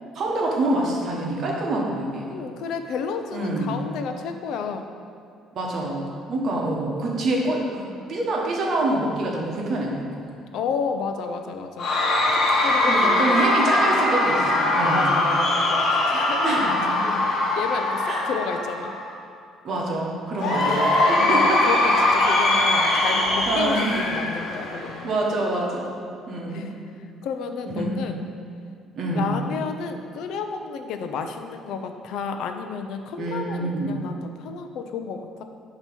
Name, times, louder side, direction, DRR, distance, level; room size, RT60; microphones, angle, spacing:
voice 1, 0.1-2.3 3.3-3.8 5.5-7.8 8.1-10.1 12.9-15.0 16.4-16.9 18.1-18.2 19.6-20.9 21.3-21.6 23.5-23.9 25.0-25.9 26.3-26.7 27.7-28.0 29.0-29.3 33.2-34.0, right 2 dB, 40° right, -2 dB, 1.1 m, -26 dB
voice 2, 2.3-4.9 10.5-11.9 12.6-17.2 17.6-18.9 21.2-25.1 26.5-26.7 27.2-28.2 29.1-35.4, left 5 dB, 65° left, 6 dB, 0.5 m, -32 dB
Cheering / Crowd, 11.8-19.1 20.4-25.1, left 2 dB, 45° left, 1.2 m, -21 dB
8.8 x 3.0 x 6.0 m, 2.3 s
cardioid pair, 165°, 0 cm